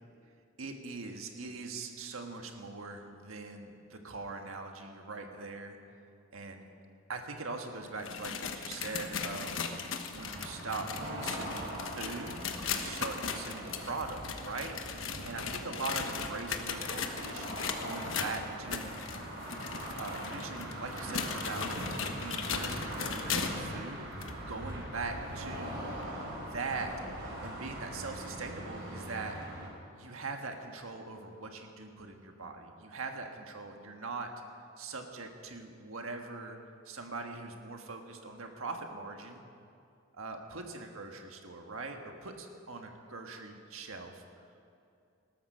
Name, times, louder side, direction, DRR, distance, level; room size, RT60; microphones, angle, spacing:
voice 1, 0.6-5.8 6.3-6.6 7.1-9.7 10.1-12.4 12.7-14.8 15.2-19.0 20.0-21.7 22.2-24.0 24.4-25.8 26.4-26.9 27.4-29.4 29.9-34.3 34.8-36.6 36.8-39.4 40.1-44.2, right 3 dB, 90° right, 4 dB, 1.5 m, -41 dB
sound 1, 7.8-23.7 24.2-24.3 25.0-25.1 26.0-26.1, left 6 dB, 70° left, 1.2 m, -38 dB
sound 2, 10.1-29.7, right 1 dB, 55° right, 4.3 m, -41 dB
19.5 x 13.0 x 5.6 m, 2.5 s
head